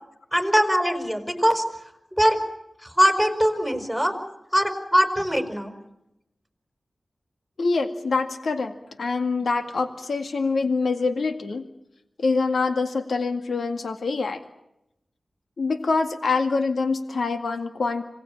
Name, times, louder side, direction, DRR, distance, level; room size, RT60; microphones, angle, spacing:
voice 1, 0.3-1.6 2.2-2.4 2.8-4.1 4.5-5.7, equal, ahead, 7 dB, 5.6 m, -21 dB
voice 2, 7.6-8.7 9.0-11.6 12.2-14.4 15.6-18.0, left 4 dB, 85° left, 7 dB, 2.1 m, -25 dB
27.0 x 19.0 x 8.8 m, 0.83 s
wide cardioid pair, 65°, 0 cm